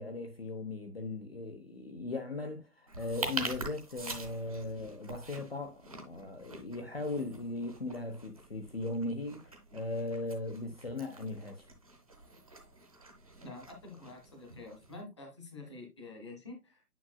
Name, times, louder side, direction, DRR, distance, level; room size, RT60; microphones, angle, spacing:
voice 1, 0.0-9.4 9.7-11.7, left 2 dB, 40° left, 0.9 m, -38 dB
sound 1, 2.9-15.0, right 2 dB, 25° right, 1.0 m, -45 dB
voice 2, 13.4-16.8, left 3 dB, 20° left, 1.1 m, -47 dB
9.4 x 5.3 x 2.2 m
figure-of-eight pair, 155°, 46 cm